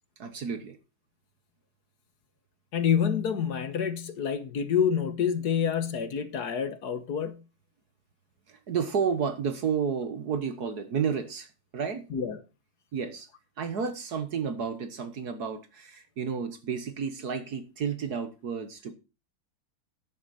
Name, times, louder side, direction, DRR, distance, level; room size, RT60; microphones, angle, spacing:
voice 1, 0.2-0.8 8.5-11.5 11.7-12.1 12.9-13.3 13.6-18.9, right 6 dB, 50° right, 1.6 m, -31 dB
voice 2, 2.7-7.4 12.1-12.4, left 7 dB, 55° left, 1.6 m, -27 dB
10.5 x 9.4 x 4.2 m
omnidirectional pair, 2.3 m